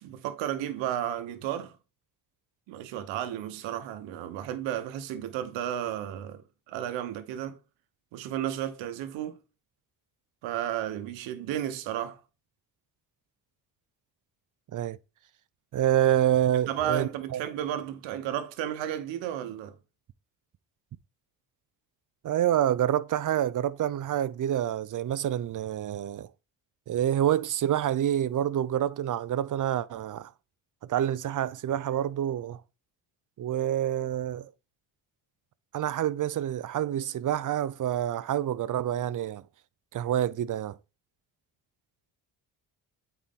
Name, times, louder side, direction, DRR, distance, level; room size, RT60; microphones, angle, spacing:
voice 1, 0.0-1.7 2.7-7.6 8.1-9.4 10.4-12.2 16.7-19.8, right 11 dB, 90° right, 1.2 m, -33 dB
voice 2, 15.7-17.4 22.2-26.3 26.9-30.3 30.8-32.6 33.4-34.5 35.7-39.4 39.9-40.8, right 11 dB, 45° right, 0.6 m, -27 dB
8.6 x 4.5 x 3.7 m
supercardioid pair, 70°, 44 cm